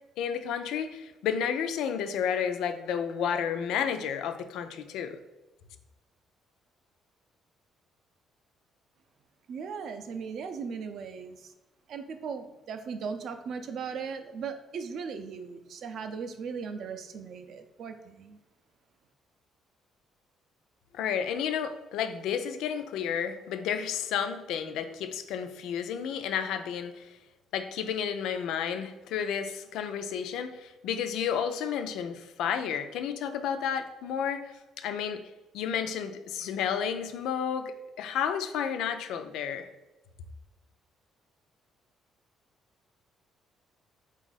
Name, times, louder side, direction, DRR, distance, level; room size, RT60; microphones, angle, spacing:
voice 1, 0.2-5.2 20.9-27.1 27.5-35.2 35.5-39.7, left 8 dB, 80° left, 8 dB, 0.4 m, -31 dB
voice 2, 9.5-11.5 11.9-18.4, right 5 dB, 50° right, 8 dB, 0.4 m, -38 dB
4.5 x 2.4 x 4.0 m, 1.1 s
cardioid pair, 170°, 0 cm